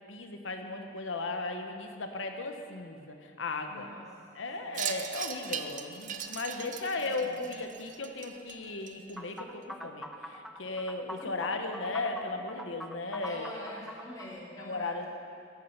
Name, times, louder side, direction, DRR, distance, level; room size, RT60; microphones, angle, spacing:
voice 1, 0.1-3.9 4.4-13.5 14.6-15.1, left 3 dB, 90° left, 5 dB, 1.0 m, -36 dB
voice 2, 3.7-4.2 4.6-4.9 6.9-7.4 11.2-11.3 11.6-11.7 13.2-15.1, equal, 20° left, -5 dB, 2.7 m, -45 dB
Wind chime, 4.7-9.4, right 8 dB, 45° right, 0.6 m, -39 dB
sound 1, 9.2-14.3, equal, ahead, 0.5 m, -43 dB
13.0 x 8.7 x 5.8 m, 2.4 s
head